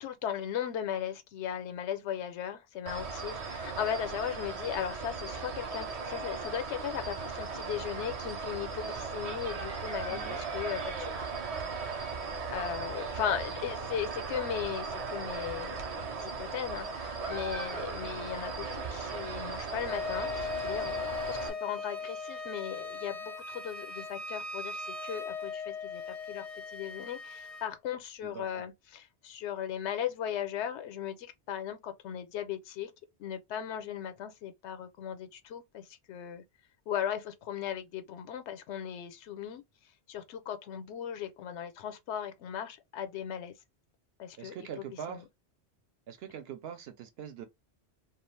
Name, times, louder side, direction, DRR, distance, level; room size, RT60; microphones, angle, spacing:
voice 1, 0.0-11.3 11.9-21.0 21.3-26.0 26.3-26.4 26.7-32.9 33.2-36.4 36.9-39.6 40.1-43.5 44.2-45.2, left 9 dB, 90° left, 0.9 m, -37 dB
sound 1, 2.9-21.5, right 4 dB, 45° right, 0.5 m, -37 dB
voice 2, 10.1-10.4 28.2-28.6 44.4-45.2 46.1-47.4, right 8 dB, 65° right, 0.9 m, -43 dB
Wind instrument woodwind instrument, 19.8-27.7, left 5 dB, 55° left, 0.4 m, -39 dB
2.4 x 2.3 x 3.1 m
omnidirectional pair, 1.1 m